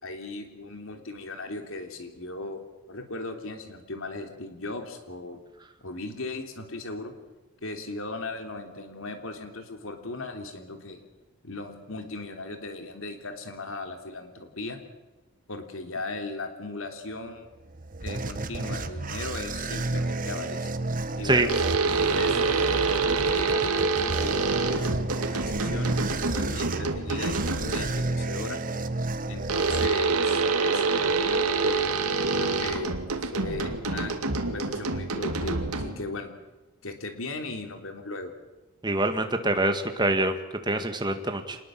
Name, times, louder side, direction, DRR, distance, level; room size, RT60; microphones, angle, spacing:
voice 1, 0.0-2.6 2.9-5.4 5.8-7.1 7.6-11.0 11.4-14.8 15.5-17.5 18.0-20.7 21.2-22.8 23.3-25.9 26.3-28.6 29.3-31.9 32.3-34.1 34.5-36.3 36.8-38.3, left 2 dB, 65° left, 5 dB, 3.3 m, -37 dB
sound 1, 17.5-30.4, right 2 dB, 40° right, 1.2 m, -32 dB
sound 2, 21.5-28.1 29.5-36.1, right 4 dB, 85° right, 2.4 m, -26 dB
voice 2, 38.8-40.4 40.7-41.6, right 2 dB, 20° right, 7 dB, 1.9 m, -25 dB
26.0 x 20.5 x 7.7 m, 1.1 s
head